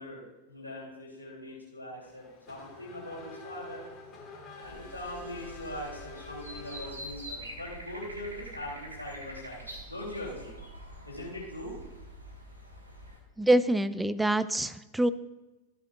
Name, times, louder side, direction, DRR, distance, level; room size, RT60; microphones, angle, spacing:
voice 1, 0.0-3.8 4.5-10.5 11.0-11.7, left 1 dB, 80° left, -4 dB, 3.1 m, -41 dB
Race car auto racing / Accelerating revving vroom, 2.0-7.5, left 4 dB, 30° left, 1.9 m, -48 dB
sound 1, 4.6-13.2, equal, 80° right, 1.7 m, -45 dB
voice 2, 13.4-15.1, right 1 dB, 5° right, 14 dB, 0.4 m, -25 dB
13.5 x 8.4 x 2.5 m, 1.1 s
figure-of-eight pair, 90°, 0 cm